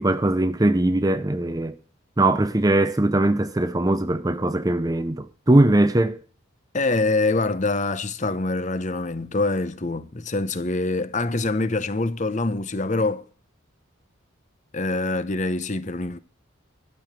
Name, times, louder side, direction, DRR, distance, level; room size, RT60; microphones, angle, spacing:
voice 1, 0.0-1.8 2.2-6.2, right 1 dB, 15° right, 0.5 m, -20 dB
voice 2, 6.7-13.2 14.7-16.2, left 2 dB, 35° left, 0.8 m, -25 dB
12.0 x 6.8 x 7.6 m
head